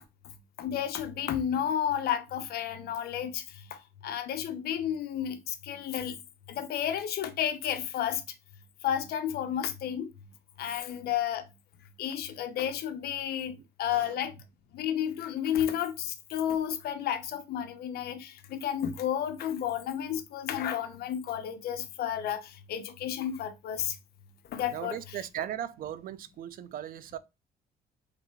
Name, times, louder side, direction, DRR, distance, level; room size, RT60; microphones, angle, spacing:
voice 1, 0.6-6.2 6.5-8.2 8.8-10.1 10.6-11.5 12.0-14.4 14.7-24.0 24.5-25.2, left 10 dB, 70° left, 0.9 m, -32 dB
voice 2, 24.7-27.2, right 10 dB, 60° right, 0.5 m, -38 dB
5.0 x 3.3 x 3.1 m
cardioid pair, 110°, 17 cm